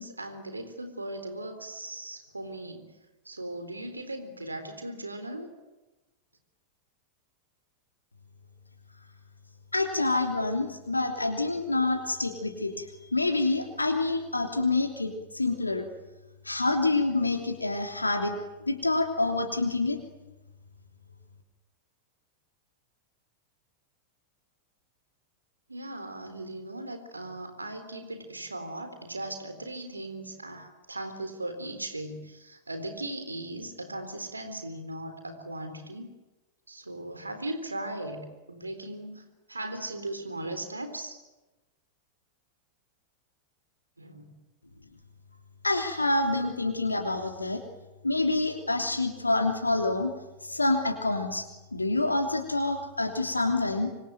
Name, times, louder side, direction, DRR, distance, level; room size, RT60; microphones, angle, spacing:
voice 1, 0.0-2.9 3.3-5.5 25.7-36.1 36.7-39.2 39.5-41.2 44.0-44.3, right 1 dB, 80° right, 9 dB, 3.8 m, -38 dB
voice 2, 9.7-12.8 13.1-15.8 16.4-18.4 18.7-20.0 45.6-47.6 48.0-50.1 50.5-53.9, left 2 dB, 80° left, 3 dB, 3.1 m, -27 dB
26.0 x 24.0 x 9.3 m, 1.1 s
figure-of-eight pair, 90°, 0 cm